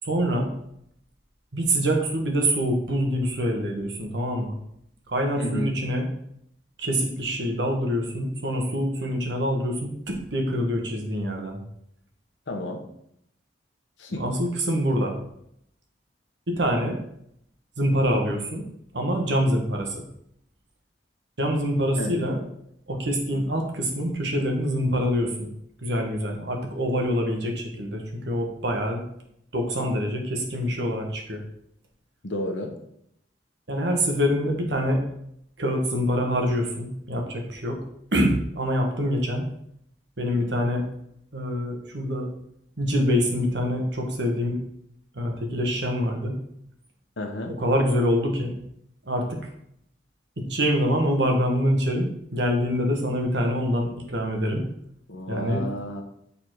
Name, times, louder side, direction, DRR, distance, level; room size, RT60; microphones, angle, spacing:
voice 1, 0.0-0.5 1.5-4.6 5.1-6.1 6.8-11.6 14.1-15.1 16.5-17.0 17.8-18.6 18.9-20.0 21.4-22.4 22.9-25.5 25.8-29.0 29.5-31.4 33.7-35.0 35.6-37.8 38.1-39.5 40.2-40.8 41.3-42.3 42.8-44.6 45.1-46.4 47.6-48.5 49.0-49.4 50.4-54.6 55.3-55.6, equal, 70° right, 2 dB, 1.4 m, -25 dB
voice 2, 5.4-5.7 12.5-12.8 14.0-14.2 22.0-22.3 32.2-32.7 47.2-47.5 55.1-56.0, left 1 dB, 85° left, 4 dB, 1.1 m, -31 dB
6.8 x 4.2 x 4.7 m, 0.73 s
head